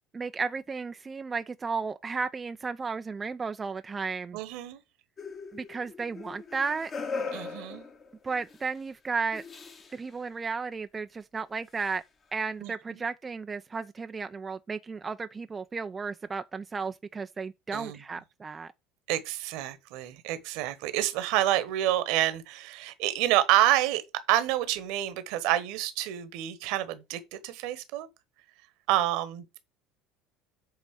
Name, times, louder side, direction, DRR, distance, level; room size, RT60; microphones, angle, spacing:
voice 1, 0.1-4.4 5.5-6.9 8.2-9.4 9.9-12.0 12.3-18.7, right 4 dB, 25° right, 0.5 m, -34 dB
voice 2, 4.3-4.8 7.3-7.9 12.6-12.7 17.7-18.0 19.1-24.0 24.3-28.1 28.9-29.6, right 14 dB, 60° right, 1.2 m, -28 dB
sound 1, 5.2-8.6 9.3-10.0 11.8-11.9, left 4 dB, 35° left, 1.6 m, -39 dB
8.1 x 4.0 x 6.4 m
figure-of-eight pair, 65°, 0 cm